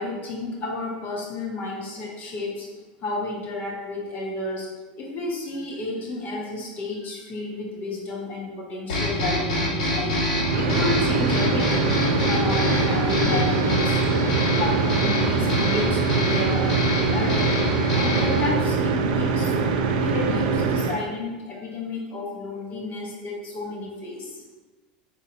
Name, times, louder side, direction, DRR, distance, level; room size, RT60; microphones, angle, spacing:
voice 1, 0.0-2.7 3.0-4.7 5.0-11.9 12.3-16.7 17.1-24.4, left 2 dB, 40° left, -1 dB, 0.9 m, -31 dB
sound 1, 8.9-18.5, left 1 dB, 80° left, 1.5 m, -26 dB
sound 2, 10.3-21.0, right 4 dB, 75° right, 0.4 m, -23 dB
4.0 x 2.7 x 2.7 m, 1.2 s
supercardioid pair, 115°, 5 cm